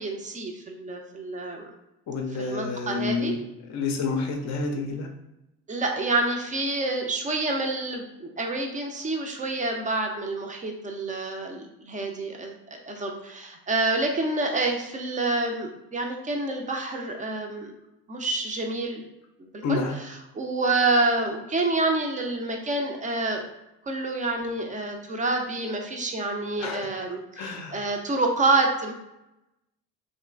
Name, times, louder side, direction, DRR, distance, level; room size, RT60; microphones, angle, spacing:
voice 1, 0.0-1.7 2.4-3.4 5.7-17.7 18.1-19.1 19.4-23.5 23.8-28.9, right 2 dB, 20° right, 3 dB, 0.4 m, -28 dB
voice 2, 2.1-3.4 3.7-5.1 19.6-20.0 26.6-26.9 27.4-27.8, left 4 dB, 40° left, 4 dB, 0.5 m, -29 dB
2.9 x 2.5 x 2.3 m, 0.91 s
hypercardioid pair, 55°, 46 cm